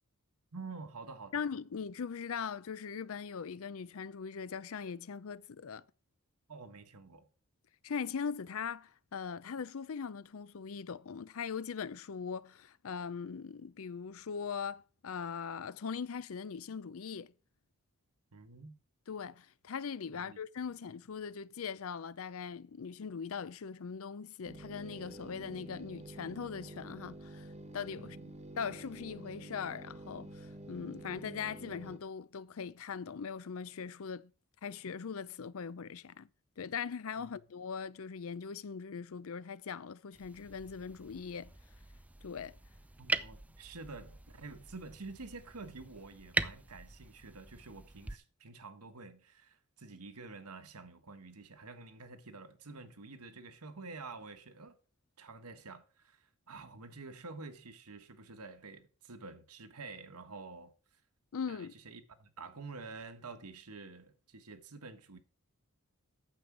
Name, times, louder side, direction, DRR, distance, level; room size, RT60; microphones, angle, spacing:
voice 1, 0.5-1.4 6.5-7.3 18.3-18.7 20.1-20.4 27.9-28.4 37.2-37.3 43.0-54.8 55.2-60.7 61.5-65.2, right 3 dB, 85° right, 1.4 m, -49 dB
voice 2, 1.3-5.8 7.8-17.3 19.1-27.5 27.7-28.2 28.6-34.3 34.6-36.3 36.6-41.5 42.2-42.6 61.3-61.7, left 6 dB, 65° left, 0.5 m, -40 dB
sound 1, 24.4-32.0, right 1 dB, 30° right, 1.2 m, -49 dB
sound 2, 40.1-48.1, right 2 dB, 5° right, 0.4 m, -41 dB
9.0 x 7.1 x 6.1 m
head